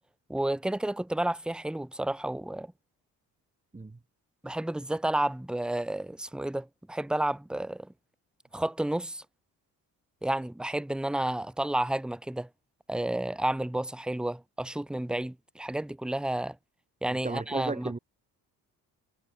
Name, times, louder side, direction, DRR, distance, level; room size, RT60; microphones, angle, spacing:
voice 1, 0.3-2.7 4.4-7.9 8.5-9.2 10.2-12.5 12.9-16.6 17.0-17.9, right 1 dB, ahead, 0.9 m, -31 dB
voice 2, 17.1-18.0, right 3 dB, 20° right, 2.6 m, -35 dB
cardioid pair, 75°, 38 cm